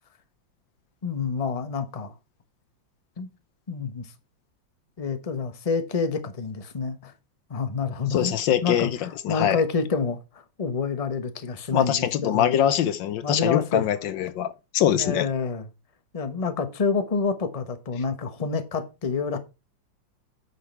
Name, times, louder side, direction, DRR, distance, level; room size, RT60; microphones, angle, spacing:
voice 1, 1.0-2.1 3.2-3.3 3.7-4.1 5.0-7.1 7.5-8.4 8.6-12.6 13.2-13.9 15.0-15.7 16.1-19.4, left 5 dB, 20° left, 1.1 m, -28 dB
voice 2, 8.1-9.0 9.2-9.6 11.7-15.3, left 10 dB, 75° left, 1.4 m, -23 dB
9.8 x 6.2 x 4.5 m
omnidirectional pair, 2.1 m